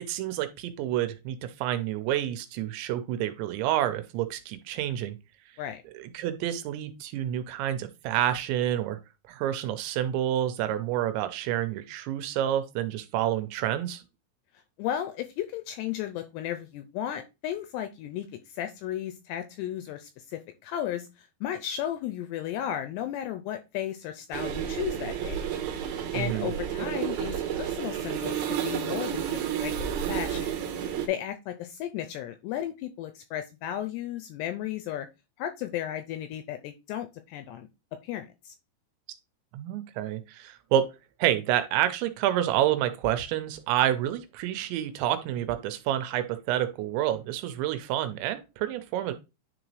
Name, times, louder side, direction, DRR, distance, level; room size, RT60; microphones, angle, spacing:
voice 1, 0.0-5.2 5.9-9.0 9.3-14.0 26.1-26.5 39.5-40.9 41.2-49.1, right 12 dB, 85° right, 3.0 m, -28 dB
voice 2, 14.8-25.5 26.1-30.7 31.1-35.1 35.4-37.7 38.0-38.6, left 11 dB, 85° left, 2.5 m, -34 dB
sound 1, 24.3-31.1, right 9 dB, 70° right, 2.4 m, -31 dB
10.0 x 4.0 x 3.1 m
omnidirectional pair, 5.3 m